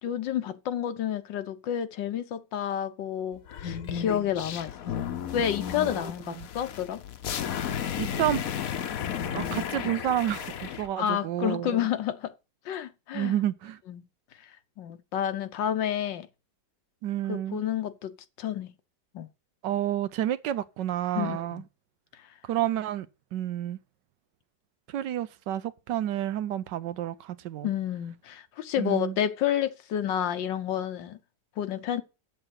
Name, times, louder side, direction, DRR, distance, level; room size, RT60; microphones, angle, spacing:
voice 1, 0.0-4.7 5.3-7.0 11.0-12.3 12.6-13.3 13.9-14.0 14.8-16.3 17.3-18.7 19.1-19.3 21.1-21.6 27.6-31.2 31.6-32.0, left 10 dB, 85° left, 1.6 m, -30 dB
sound 1, 3.5-10.9, left 8 dB, 60° left, 1.1 m, -33 dB
voice 2, 6.0-6.5 8.0-8.4 9.3-11.8 13.1-13.8 17.0-17.6 19.6-21.6 22.4-23.8 24.9-27.7 28.8-29.2, right 12 dB, 80° right, 1.4 m, -30 dB
7.9 x 7.6 x 6.3 m
omnidirectional pair, 1.9 m